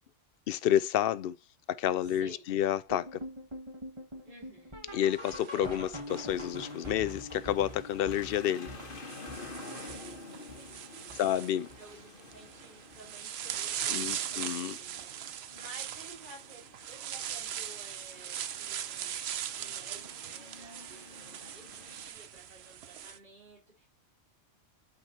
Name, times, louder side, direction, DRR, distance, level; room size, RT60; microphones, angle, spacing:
voice 1, 0.5-1.4 1.7-3.2 4.9-8.7 11.1-11.7 13.9-14.8, left 11 dB, 60° left, 0.7 m, -30 dB
voice 2, 2.0-2.5 4.2-4.8 10.3-11.2 11.6-19.2 19.6-23.9, right 2 dB, 40° right, 4.1 m, -54 dB
sound 1, 2.9-12.0 12.3-12.6 12.9-13.0 13.5-13.6 14.1-14.2, left 1 dB, 25° right, 1.5 m, -45 dB
sound 2, 5.1-6.6 7.9-8.0 8.8-23.2, right 10 dB, 65° right, 0.8 m, -40 dB
sound 3, 6.1-22.1, left 3 dB, 45° left, 1.4 m, -50 dB
8.9 x 5.1 x 2.8 m
omnidirectional pair, 1.3 m